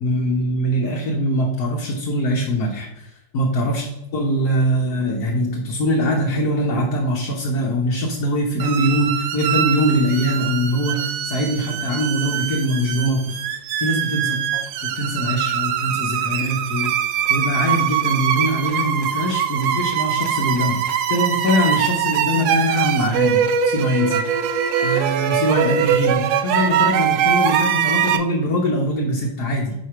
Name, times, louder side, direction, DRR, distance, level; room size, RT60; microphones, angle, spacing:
voice 1, 0.0-3.9 4.1-13.4 13.8-14.4 14.9-16.9 17.3-24.2 24.8-29.7, equal, 70° left, -1 dB, 1.4 m, -22 dB
sound 1, 8.6-28.2, right 9 dB, 80° right, 1.1 m, -22 dB
4.9 x 4.8 x 5.7 m, 0.97 s
omnidirectional pair, 1.7 m